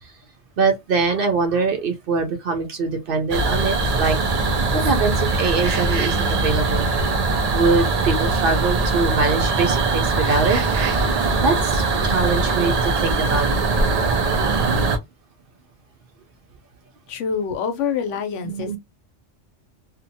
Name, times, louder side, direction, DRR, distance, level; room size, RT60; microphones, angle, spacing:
voice 1, 0.6-4.2 4.7-6.9 7.5-10.6 11.4-13.5 18.5-18.8, right 4 dB, 60° right, 0.7 m, -23 dB
sound 1, 3.3-15.0, right 3 dB, 85° right, 0.3 m, -21 dB
voice 2, 17.1-18.8, left 6 dB, 80° left, 0.9 m, -26 dB
2.7 x 2.2 x 2.7 m
omnidirectional pair, 1.3 m